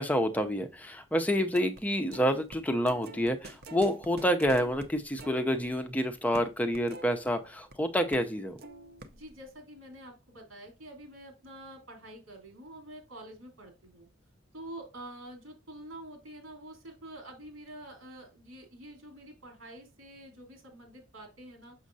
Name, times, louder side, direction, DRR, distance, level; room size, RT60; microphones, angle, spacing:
voice 1, 0.0-8.6, equal, 10° left, 0.5 m, -28 dB
sound 1, 1.5-1.8 2.1-7.7 8.1-8.3 8.6-9.4, right 2 dB, 50° right, 0.7 m, -47 dB
voice 2, 9.1-14.1 14.5-21.7, right 1 dB, 85° right, 3.0 m, -47 dB
6.2 x 6.2 x 2.6 m
head